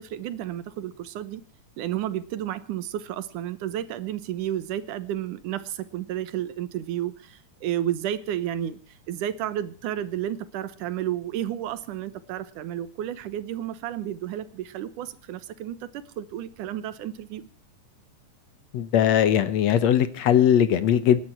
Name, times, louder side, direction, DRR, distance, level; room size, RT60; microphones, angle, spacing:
voice 1, 0.0-1.4 1.8-17.5, right 11 dB, 80° right, 14 dB, 2.6 m, -32 dB
voice 2, 18.7-21.2, left 10 dB, 65° left, 14 dB, 2.1 m, -20 dB
27.0 x 11.5 x 4.5 m, 0.36 s
omnidirectional pair, 3.6 m